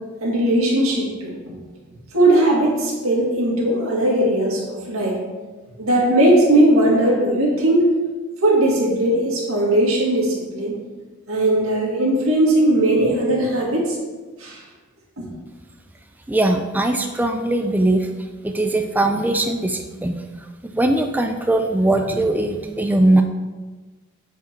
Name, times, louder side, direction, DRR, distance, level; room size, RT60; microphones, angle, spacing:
voice 1, 0.2-1.6 2.1-5.2 5.8-7.9 8.4-10.7 11.3-14.0 14.4-14.6 15.2-15.3, right 1 dB, 85° right, -3 dB, 2.1 m, -18 dB
voice 2, 16.3-18.1 18.4-20.2 20.6-23.2, right 1 dB, 10° right, 5 dB, 0.3 m, -20 dB
8.1 x 4.6 x 4.5 m, 1.3 s
head